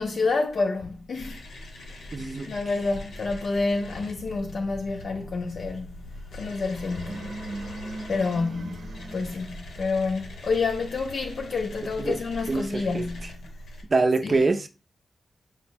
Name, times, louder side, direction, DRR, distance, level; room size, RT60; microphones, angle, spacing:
voice 1, 0.0-1.4 2.0-2.1 2.5-6.0 6.3-7.3 8.1-13.4 14.2-14.5, left 3 dB, 60° left, 0.4 m, -28 dB
sound 1, 1.1-13.8, left 1 dB, 80° left, 0.9 m, -42 dB
voice 2, 2.1-2.5 12.0-12.2 12.5-13.0 13.9-14.7, right 3 dB, 35° right, 0.5 m, -24 dB
sound 2, 6.8-9.7, right 2 dB, 75° right, 0.7 m, -39 dB
4.6 x 2.0 x 4.3 m
wide cardioid pair, 110°, 0 cm